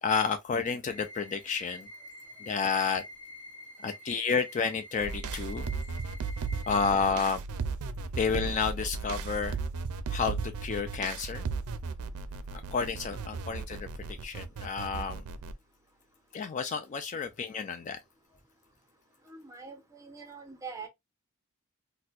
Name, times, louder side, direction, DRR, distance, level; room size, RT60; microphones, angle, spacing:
voice 1, 0.0-1.9 2.4-3.0 3.8-5.7 6.7-7.4 8.2-9.6 10.1-11.4 12.7-13.9 14.2-15.2 16.3-18.0, left 5 dB, 35° left, 0.3 m, -30 dB
sound 1, 0.9-6.9, equal, 10° left, 1.3 m, -47 dB
sound 2, 5.0-15.5, right 4 dB, 85° right, 0.4 m, -36 dB
voice 2, 19.3-20.9, right 5 dB, 15° right, 0.7 m, -44 dB
4.2 x 2.1 x 2.3 m
head